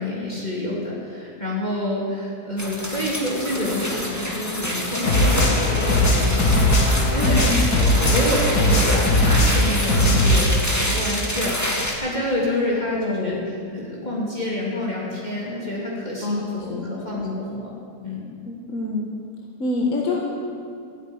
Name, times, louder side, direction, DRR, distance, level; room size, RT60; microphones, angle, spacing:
voice 1, 0.0-6.6 7.1-7.4 8.0-11.6 12.0-13.4 13.7-17.7 18.0-18.2, left 1 dB, 25° left, -5 dB, 2.9 m, -28 dB
sound 1, 2.6-11.9, equal, 10° left, 1.9 m, -27 dB
sound 2, 5.1-10.4, left 1 dB, 65° left, 2.3 m, -19 dB
voice 2, 7.2-7.6 12.9-13.4 16.2-17.4 18.5-19.1 19.6-20.2, left 2 dB, 50° left, -2 dB, 2.0 m, -27 dB
15.0 x 9.1 x 9.7 m, 2.4 s
omnidirectional pair, 1.8 m